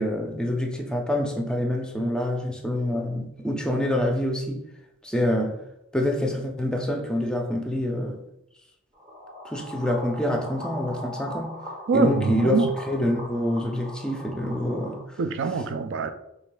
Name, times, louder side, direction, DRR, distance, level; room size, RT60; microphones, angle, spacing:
voice 1, 0.0-4.6 5.0-5.6 5.9-8.2 9.4-11.6 11.9-12.6 12.9-15.0, left 1 dB, 5° left, 0.5 m, -26 dB
sound 1, 8.9-15.0, equal, 30° right, 1.1 m, -40 dB
voice 2, 11.9-12.7 15.2-16.1, right 4 dB, 60° right, 0.4 m, -24 dB
4.9 x 3.2 x 2.2 m
head